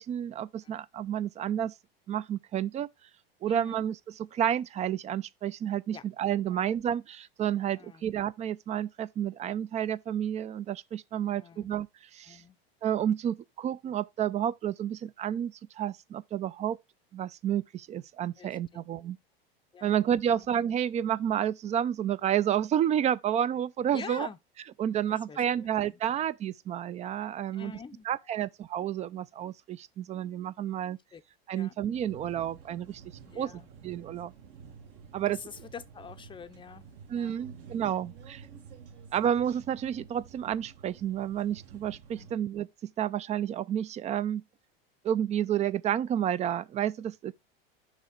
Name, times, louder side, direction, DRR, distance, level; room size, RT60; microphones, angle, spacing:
voice 1, 0.0-1.7 2.1-2.9 3.4-11.9 12.1-12.4 12.8-16.8 17.1-19.2 19.8-24.3 24.8-27.7 28.1-31.0 31.5-33.0 33.4-33.5 33.8-34.3 35.1-35.4 37.1-38.5 39.1-44.4 45.0-47.3, right 10 dB, 25° right, 0.3 m, -30 dB
voice 2, 3.5-3.8 5.9-6.0 6.5-6.6 7.7-8.1 11.2-11.7 12.3-12.6 18.4-18.8 19.7-19.9 20.2-20.5 23.9-24.4 25.1-26.0 27.5-28.1 28.4-28.5 31.1-31.2 31.5-31.7 33.2-33.7 35.3-36.8 37.1-37.4 42.2-42.3, left 6 dB, 15° left, 0.6 m, -46 dB
sound 1, 31.9-42.4, right 6 dB, 55° right, 1.4 m, -50 dB
6.5 x 3.1 x 5.9 m
hypercardioid pair, 100°, 30 cm